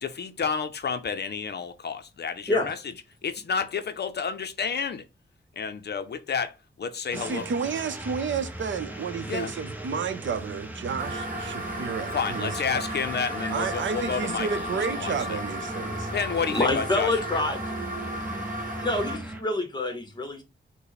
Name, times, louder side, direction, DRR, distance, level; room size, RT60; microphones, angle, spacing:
voice 1, 0.0-2.8 3.2-5.0 5.6-7.4 9.3-9.5 12.1-15.4 16.1-17.5, left 6 dB, 55° left, 0.5 m, -30 dB
sound 1, 7.1-19.4, right 1 dB, 10° right, 0.7 m, -38 dB
voice 2, 7.1-12.8 13.5-16.1, right 6 dB, 70° right, 0.6 m, -31 dB
sound 2, 11.0-19.2, equal, 45° right, 1.0 m, -35 dB
voice 3, 16.5-17.9 18.8-20.4, left 2 dB, 20° left, 1.0 m, -27 dB
5.5 x 2.1 x 4.0 m
wide cardioid pair, 145°, 20 cm